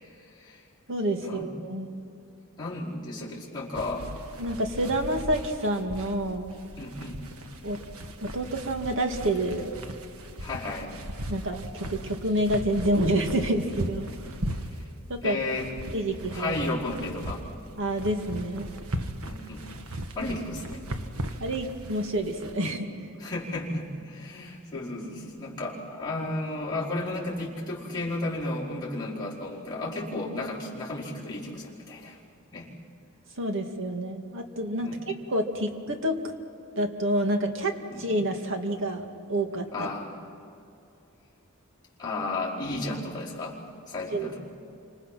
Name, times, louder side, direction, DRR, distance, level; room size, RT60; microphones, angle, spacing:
voice 1, 0.2-0.6 1.2-1.5 2.6-4.2 6.8-7.2 10.4-10.9 15.2-15.7 16.3-17.5 19.2-19.7 20.1-20.8 23.2-32.2 32.5-32.7 34.8-35.0 37.9-38.1 39.7-40.1 42.0-44.4, left 2 dB, 20° left, -8 dB, 4.6 m, -33 dB
voice 2, 0.9-1.9 4.4-6.6 7.6-7.8 8.2-9.7 11.3-14.1 15.1-15.4 15.9-16.6 17.8-18.7 21.4-23.1 33.4-36.3 36.8-37.7 38.0-39.9 44.1-44.3, right 1 dB, 65° right, 4 dB, 2.3 m, -28 dB
sound 1, 3.7-22.6, right 1 dB, 80° right, 1.5 m, -38 dB
28.5 x 26.0 x 5.9 m, 2.6 s
head